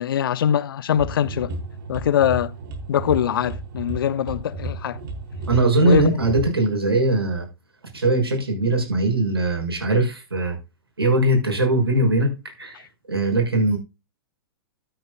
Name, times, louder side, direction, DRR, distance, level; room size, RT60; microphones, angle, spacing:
voice 1, 0.0-1.5 1.9-2.5 2.9-5.0 5.8-6.2, left 9 dB, 65° left, 0.8 m, -22 dB
sound 1, 0.9-6.5, right 2 dB, 60° right, 4.9 m, -33 dB
voice 2, 5.5-7.5 7.9-10.6 11.0-12.3 12.6-13.8, right 2 dB, 85° right, 6.5 m, -20 dB
13.5 x 9.2 x 2.4 m
hypercardioid pair, 110°, 13 cm